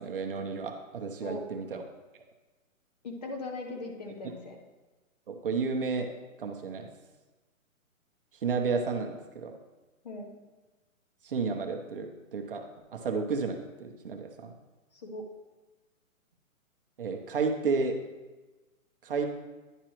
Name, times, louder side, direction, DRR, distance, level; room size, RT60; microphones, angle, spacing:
voice 1, 0.0-1.8 5.3-6.1 6.4-6.9 8.4-9.5 11.2-12.6 12.9-14.5 17.0-18.0 19.0-19.3, right 4 dB, 40° right, 3 dB, 0.7 m, -32 dB
voice 2, 3.0-4.6 10.0-10.3 14.9-15.3, left 2 dB, 30° left, 2 dB, 0.6 m, -39 dB
10.0 x 5.9 x 3.0 m, 1.2 s
hypercardioid pair, 155°, 42 cm